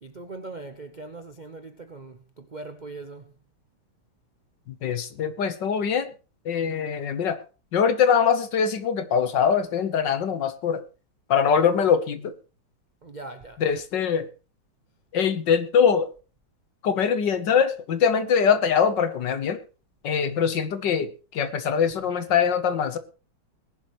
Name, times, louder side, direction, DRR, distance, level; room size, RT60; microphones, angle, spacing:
voice 1, 0.0-3.3 13.0-13.6, right 3 dB, 55° right, 0.4 m, -40 dB
voice 2, 4.7-6.1 6.4-7.4 7.7-10.8 11.3-12.4 13.6-14.3 15.1-16.1 16.8-19.6 20.0-23.0, left 7 dB, 60° left, 1.7 m, -23 dB
20.0 x 11.0 x 3.1 m
omnidirectional pair, 2.3 m